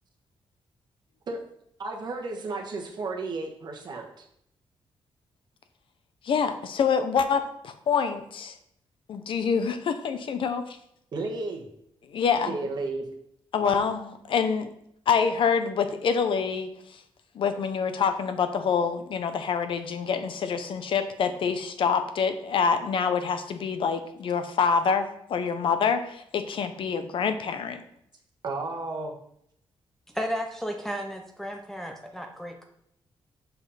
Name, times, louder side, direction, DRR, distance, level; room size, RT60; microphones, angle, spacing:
voice 1, 1.8-4.2 11.1-11.7 12.5-13.0 13.6-13.8 28.4-29.2, right 3 dB, 45° right, 1 dB, 1.5 m, -33 dB
voice 2, 6.2-8.6 9.1-10.8 12.1-12.6 13.5-14.7 15.1-16.7 17.3-27.8, left 6 dB, 60° left, 9 dB, 0.8 m, -26 dB
voice 3, 30.1-32.6, equal, 5° left, 2 dB, 0.7 m, -33 dB
7.0 x 5.3 x 5.8 m, 0.73 s
wide cardioid pair, 175°, 10 cm